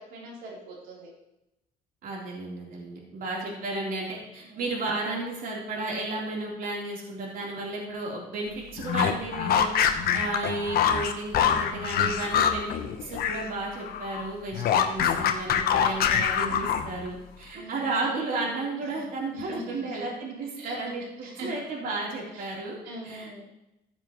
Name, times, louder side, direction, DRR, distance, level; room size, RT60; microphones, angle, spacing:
voice 1, 0.1-1.1 4.4-4.7 9.9-10.3 16.4-16.7 17.5-17.9 18.9-19.0 19.3-20.1 20.6-20.8 21.2-21.5 22.3-22.4 22.8-23.4, right 1 dB, 90° right, -3 dB, 3.7 m, -42 dB
voice 2, 2.0-22.8 23.0-23.4, right 2 dB, 55° right, -3 dB, 3.6 m, -33 dB
sound 1, 8.8-13.5 13.8-17.1, left 8 dB, 65° left, 1.0 m, -25 dB
14.0 x 7.4 x 3.1 m, 0.89 s
cardioid pair, 110°, 17 cm